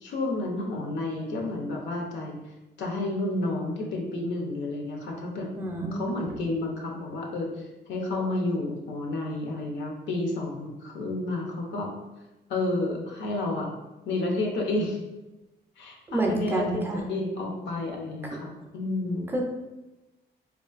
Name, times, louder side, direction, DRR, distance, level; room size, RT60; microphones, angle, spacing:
voice 1, 0.0-2.4 2.8-5.5 5.9-11.9 12.5-13.7 14.1-15.0 15.8-19.3, left 2 dB, 90° left, 0 dB, 0.6 m, -30 dB
voice 2, 5.6-6.2 16.1-17.0 18.2-18.4 19.3-19.4, right 2 dB, 10° right, 0 dB, 0.4 m, -28 dB
3.6 x 2.4 x 2.4 m, 1.0 s
cardioid pair, 165°, 18 cm